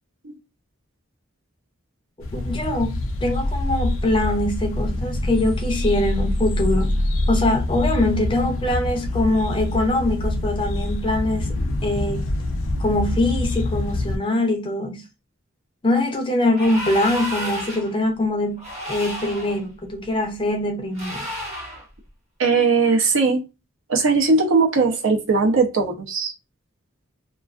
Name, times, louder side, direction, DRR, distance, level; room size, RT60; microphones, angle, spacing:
sound 1, 2.2-14.2, left 1 dB, 75° left, 0.5 m, -25 dB
voice 1, 2.3-7.0 7.3-11.6 11.8-12.3 12.8-15.0 15.8-21.3, left 1 dB, 25° left, 0.5 m, -23 dB
sound 2, 16.5-18.0 18.6-19.6 20.9-21.9, equal, 35° right, 0.9 m, -32 dB
voice 2, 22.4-23.4 23.9-26.3, right 4 dB, 70° right, 0.6 m, -19 dB
2.3 x 2.3 x 2.3 m
head